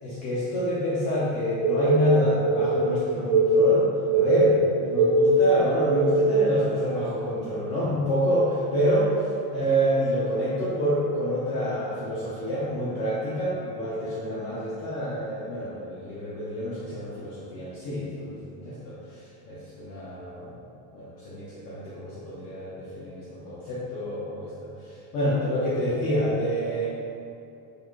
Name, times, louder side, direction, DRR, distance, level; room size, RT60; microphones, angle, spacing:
voice 1, 0.0-3.9 4.1-9.1 9.5-19.0 19.5-20.5 20.9-24.7 25.1-26.9, equal, 35° left, -8 dB, 0.5 m, -27 dB
sound 1, 1.6-6.5, right 2 dB, 80° right, 0.5 m, -21 dB
4.7 x 4.0 x 2.3 m, 2.7 s
cardioid pair, 170°, 46 cm